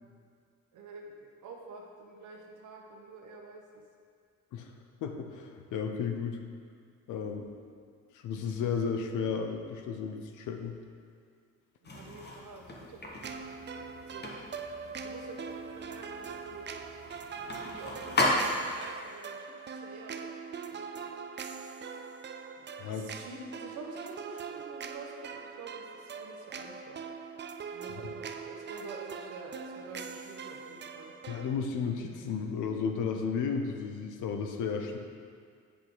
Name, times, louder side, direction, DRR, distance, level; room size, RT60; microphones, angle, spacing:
voice 1, 0.7-3.8 11.8-13.2 13.7-14.4 14.8-16.7 17.5-21.1 22.6-27.0 27.7-31.1, right 3 dB, 75° right, 1 dB, 1.2 m, -48 dB
voice 2, 5.0-6.4 7.1-7.5 8.1-10.7 22.8-23.1 31.3-35.0, left 6 dB, 85° left, 5 dB, 0.8 m, -33 dB
sound 1, 11.8-18.9, left 1 dB, 35° left, 1.3 m, -35 dB
sound 2, 13.2-31.6, right 5 dB, 35° right, 0.5 m, -42 dB
8.4 x 6.3 x 4.0 m, 2.2 s
cardioid pair, 90°, 30 cm